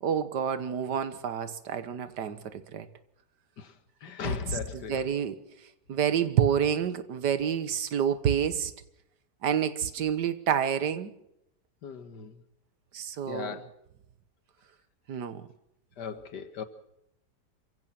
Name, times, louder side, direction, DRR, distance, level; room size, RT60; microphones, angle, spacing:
voice 1, 0.0-2.9 4.2-5.4 5.9-8.7 9.4-11.1 12.9-13.6 15.1-15.4, right 8 dB, 85° right, 1.8 m, -28 dB
voice 2, 4.0-5.0 11.8-12.4 13.3-13.7 16.0-16.6, left 5 dB, 85° left, 2.0 m, -36 dB
27.5 x 16.0 x 6.0 m
omnidirectional pair, 1.8 m